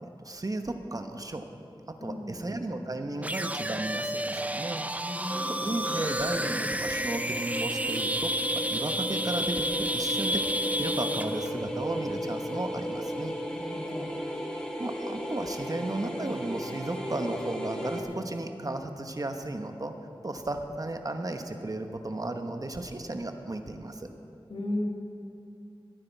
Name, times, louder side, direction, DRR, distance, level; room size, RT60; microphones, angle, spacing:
voice 1, 0.0-1.4 1.9-9.7 9.9-10.5 10.8-13.4 14.8-20.0 20.2-24.1, right 2 dB, 40° right, 6 dB, 1.0 m, -34 dB
voice 2, 2.0-2.5 5.0-5.7 13.5-14.2 24.5-24.9, left 1 dB, 80° left, -1 dB, 2.1 m, -36 dB
sound 1, 3.2-11.5, right 1 dB, 15° right, 0.5 m, -31 dB
sound 2, 5.3-18.0, equal, 10° left, 2.0 m, -35 dB
21.0 x 9.5 x 4.6 m, 2.7 s
wide cardioid pair, 55°, 9 cm